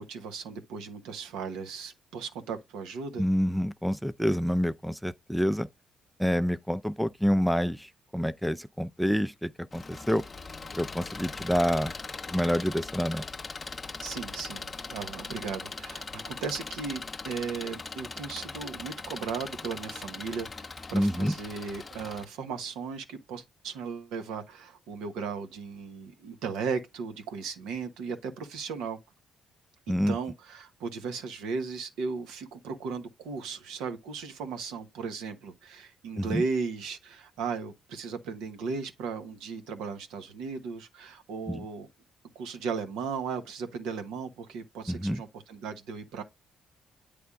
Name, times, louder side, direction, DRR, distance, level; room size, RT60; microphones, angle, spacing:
voice 1, 0.0-3.2 14.0-29.0 29.9-41.9 42.3-46.2, right 5 dB, 90° right, 1.0 m, -36 dB
voice 2, 3.2-5.7 6.2-10.2 10.7-11.9 12.3-13.3 20.9-21.3 29.9-30.2 36.2-36.4 41.5-41.7 44.9-45.2, equal, ahead, 0.4 m, -27 dB
Engine, 9.7-22.2, left 4 dB, 30° left, 0.7 m, -40 dB
8.4 x 3.4 x 3.5 m
cardioid pair, 75°, 0 cm